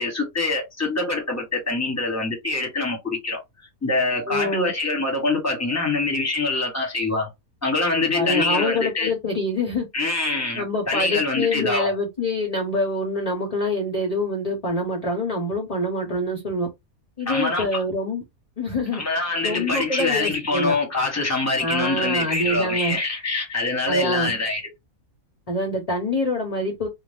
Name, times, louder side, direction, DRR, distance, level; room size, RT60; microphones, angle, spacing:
voice 1, 0.0-3.4 3.8-7.3 7.6-9.1 9.9-11.9 17.3-17.8 18.9-24.6, left 3 dB, 15° left, 1.0 m, -24 dB
voice 2, 4.3-4.7 8.1-9.9 10.5-16.7 17.2-18.2 18.6-19.0 19.4-20.8 21.6-23.0 23.9-24.3 25.5-26.9, left 1 dB, 35° left, 0.7 m, -25 dB
2.7 x 2.2 x 3.3 m
omnidirectional pair, 1.5 m